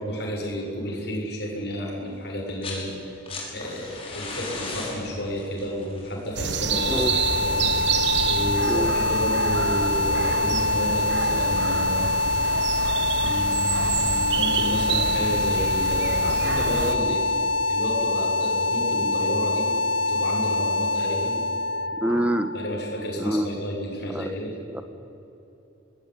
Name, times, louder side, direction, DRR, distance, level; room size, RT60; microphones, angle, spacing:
voice 1, 0.0-3.2 3.5-8.0 8.3-12.1 13.0-19.7 20.1-21.4 22.5-24.5, equal, 55° left, -1 dB, 7.1 m, -31 dB
sound 1, 2.4-2.9 3.1-8.0 9.2-9.3, left 3 dB, 30° left, 5.8 m, -37 dB
sound 2, 6.4-17.0, right 5 dB, 60° right, 1.4 m, -28 dB
sound 3, 6.6-23.5, left 2 dB, 70° left, 0.7 m, -25 dB
voice 2, 22.0-22.5 23.2-23.5 24.1-24.3 24.7-24.8, equal, 5° right, 8 dB, 1.4 m, -25 dB
26.0 x 20.0 x 9.5 m, 2.9 s
head